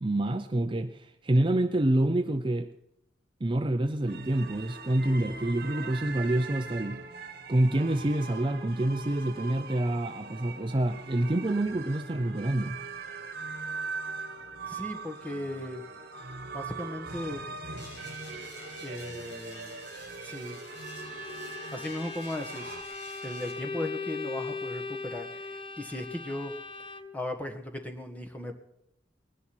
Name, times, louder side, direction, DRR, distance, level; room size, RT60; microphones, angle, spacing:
voice 1, 0.0-2.7 3.4-7.0 7.5-12.8, right 1 dB, 25° right, 0.6 m, -27 dB
sound 1, 4.1-22.8, right 4 dB, 55° right, 1.5 m, -41 dB
voice 2, 14.7-15.8 16.5-17.4 18.8-19.8 20.2-20.6 21.7-22.8 23.2-26.5 27.1-28.5, left 1 dB, 10° left, 1.7 m, -37 dB
sound 2, 17.8-23.5, left 2 dB, 65° left, 5.1 m, -49 dB
Bowed string instrument, 20.7-27.3, left 4 dB, 30° left, 0.7 m, -39 dB
20.0 x 11.0 x 6.2 m
head